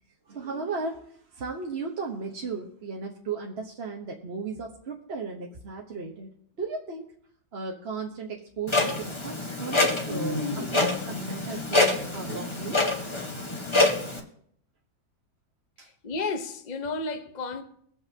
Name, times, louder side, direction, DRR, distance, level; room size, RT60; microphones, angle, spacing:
voice 1, 0.3-1.1 1.3-6.3 6.6-7.1 7.5-12.8 15.8-15.9, right 4 dB, 40° right, 1.1 m, -35 dB
Clock, 8.7-14.2, left 2 dB, 20° left, 1.1 m, -26 dB
voice 2, 16.0-17.6, left 3 dB, 35° left, 0.6 m, -32 dB
23.5 x 8.4 x 2.8 m
omnidirectional pair, 2.1 m